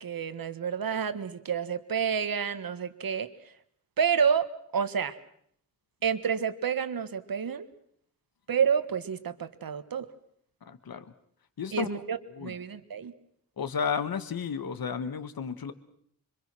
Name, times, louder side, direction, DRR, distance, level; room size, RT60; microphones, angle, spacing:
voice 1, 0.0-3.3 4.0-4.5 4.7-5.1 6.0-7.7 8.5-10.1 11.7-13.1, right 7 dB, 75° right, 12 dB, 1.5 m, -29 dB
voice 2, 10.7-11.1 11.6-11.9 12.4-12.5 13.6-15.7, left 6 dB, 85° left, 11 dB, 1.6 m, -32 dB
26.0 x 24.5 x 6.2 m, 0.66 s
wide cardioid pair, 115°, 35 cm